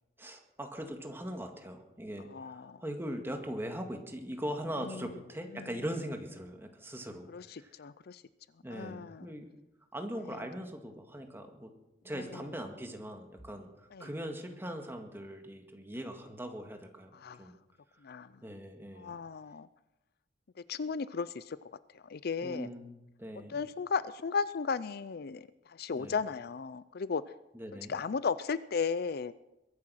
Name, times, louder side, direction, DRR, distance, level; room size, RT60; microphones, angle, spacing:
voice 1, 0.2-7.8 8.6-9.5 9.9-11.7 12.0-17.6 18.4-19.2 22.4-23.6 25.9-26.2 27.5-27.9, equal, 15° right, 4 dB, 1.9 m, -41 dB
voice 2, 2.3-2.8 4.8-5.1 5.5-5.7 7.3-8.2 8.7-9.3 12.2-12.4 13.9-14.1 17.1-17.4 18.0-18.3 19.0-19.7 20.7-21.6 22.0-22.7 23.5-27.2 27.9-29.3, left 5 dB, 55° left, 16 dB, 0.5 m, -35 dB
22.0 x 9.7 x 6.4 m, 0.94 s
head